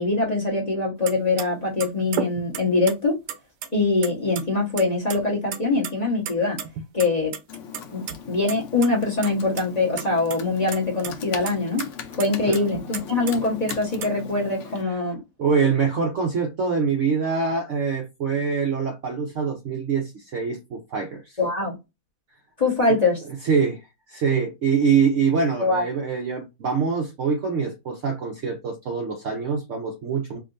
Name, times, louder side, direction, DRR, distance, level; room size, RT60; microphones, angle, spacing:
voice 1, 0.0-3.2 3.7-6.6 6.9-7.3 7.9-11.9 12.2-15.2 21.4-21.8 22.6-23.2 25.6-25.8, left 3 dB, 30° left, 1.0 m, -23 dB
sound 1, 1.1-1.2 1.4-1.5 1.8-2.9 3.3-4.1 4.4-4.5 4.8-5.2 5.5-5.9 6.3-7.4 7.7-8.2 8.5-8.6 8.8-8.9 9.2-9.6 10.0-10.4 10.7-11.1 11.5-11.6 11.8-11.9 12.2-13.3 13.7-14.1, right 8 dB, 80° right, 1.2 m, -32 dB
Computer keyboard, 7.5-14.8, left 6 dB, 60° left, 0.8 m, -39 dB
voice 2, 15.4-21.4 22.9-23.0 23.4-30.4, right 5 dB, 60° right, 0.8 m, -24 dB
4.7 x 2.6 x 2.5 m
omnidirectional pair, 1.8 m